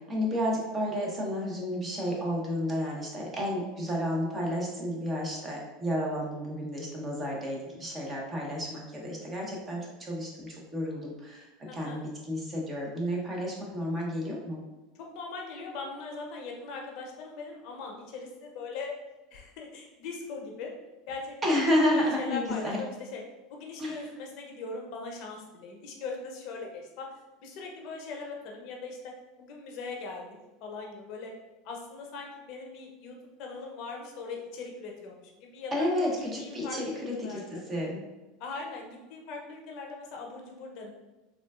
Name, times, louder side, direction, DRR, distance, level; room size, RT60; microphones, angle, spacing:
voice 1, 0.1-11.5 11.7-14.6 21.4-22.8 23.8-24.0 35.7-38.0, left 1 dB, 25° right, -2 dB, 0.9 m, -31 dB
voice 2, 11.7-12.0 15.0-18.9 19.3-20.7 21.1-21.6 21.9-23.2 23.5-27.1 27.4-30.3 30.6-31.3 31.6-35.9 36.4-37.6 38.4-40.9, left 4 dB, 60° left, 0 dB, 0.6 m, -40 dB
3.7 x 2.3 x 2.3 m, 1.1 s
hypercardioid pair, 100°, 0 cm